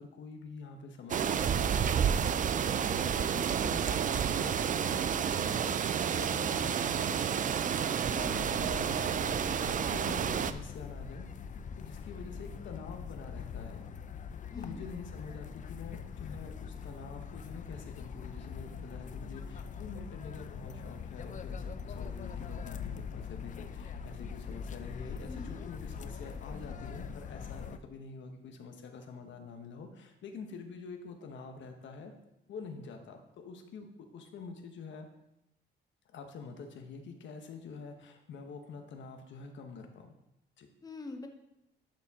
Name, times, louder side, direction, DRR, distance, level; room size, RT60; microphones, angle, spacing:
voice 1, 0.0-5.8 6.1-11.3 11.8-13.9 14.6-32.1 32.5-33.9 34.1-35.1 36.1-40.2 40.6-40.7, left 4 dB, 70° left, 5 dB, 1.1 m, -46 dB
sound 1, 1.1-10.5, right 8 dB, 40° right, 0.4 m, -30 dB
sound 2, 8.1-27.8, left 6 dB, 40° left, 0.5 m, -42 dB
voice 2, 8.1-8.5 14.5-14.8 25.3-25.5 40.8-41.3, left 3 dB, 20° left, 4 dB, 0.9 m, -44 dB
11.5 x 4.3 x 3.6 m, 0.86 s
cardioid pair, 90°, 20 cm